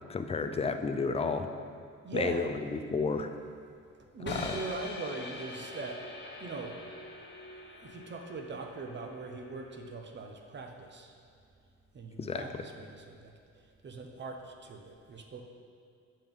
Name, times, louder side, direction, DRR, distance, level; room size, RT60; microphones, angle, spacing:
voice 1, 0.1-1.5 2.1-3.3 4.4-4.5 12.2-12.4, left 4 dB, 20° left, 7 dB, 0.4 m, -31 dB
voice 2, 2.0-2.5 4.1-6.0 6.4-6.8 7.8-11.1 11.9-15.4, right 3 dB, 35° right, 4 dB, 0.8 m, -41 dB
sound 1, 4.3-10.2, left 2 dB, 35° left, 1.2 m, -43 dB
7.6 x 5.3 x 3.7 m, 2.4 s
cardioid pair, 90°, 30 cm